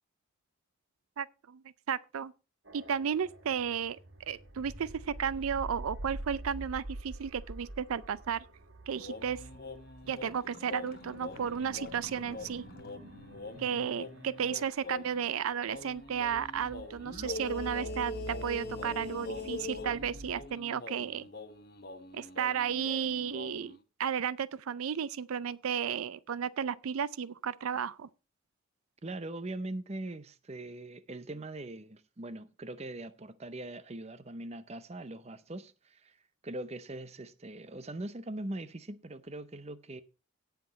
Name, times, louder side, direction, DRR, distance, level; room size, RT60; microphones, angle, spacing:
voice 1, 1.2-1.6 1.9-2.3 2.7-4.0 4.3-8.4 8.9-9.4 10.1-12.6 13.6-21.3 22.1-28.1, right 7 dB, 80° right, 0.4 m, -33 dB
sound 1, 2.7-20.5, right 2 dB, 55° right, 1.4 m, -47 dB
sound 2, 9.0-15.3 15.7-23.8, left 3 dB, 45° left, 1.1 m, -43 dB
voice 2, 13.5-14.2 29.0-36.2 36.4-40.0, right 1 dB, 30° right, 0.7 m, -41 dB
17.0 x 5.9 x 4.1 m
head